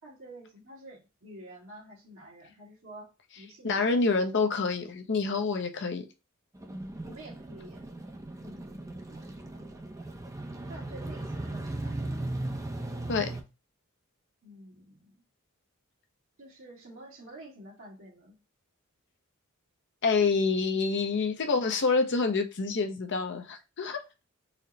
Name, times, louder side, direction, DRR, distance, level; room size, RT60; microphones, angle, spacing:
voice 1, 0.0-3.1 3.4-4.0 7.0-7.9 8.3-9.8 10.7-12.0 14.4-15.2 16.4-18.4, right 1 dB, 75° right, 1.7 m, -49 dB
voice 2, 3.6-6.0 13.1-13.3 20.0-24.0, left 4 dB, 55° left, 0.6 m, -27 dB
sound 1, 6.5-13.4, right 2 dB, 15° right, 0.5 m, -37 dB
4.1 x 2.1 x 3.9 m
head